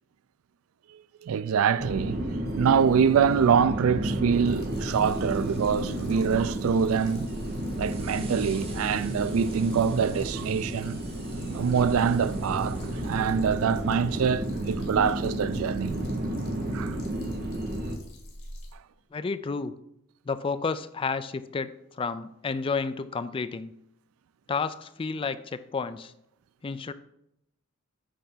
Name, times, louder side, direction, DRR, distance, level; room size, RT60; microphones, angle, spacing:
voice 1, 0.9-7.3 7.8-11.0 11.5-12.8 13.0-15.9 16.7-17.0, right 7 dB, 85° right, 0.4 m, -25 dB
sound 1, 1.8-18.0, right 1 dB, 50° right, 0.9 m, -32 dB
sound 2, 4.4-18.7, equal, 90° left, 1.9 m, -46 dB
sound 3, 4.7-14.6, right 4 dB, 30° right, 1.2 m, -51 dB
voice 2, 19.1-19.7 20.3-23.7 24.5-26.1 26.6-26.9, left 4 dB, 25° left, 0.3 m, -31 dB
8.7 x 3.4 x 5.6 m
head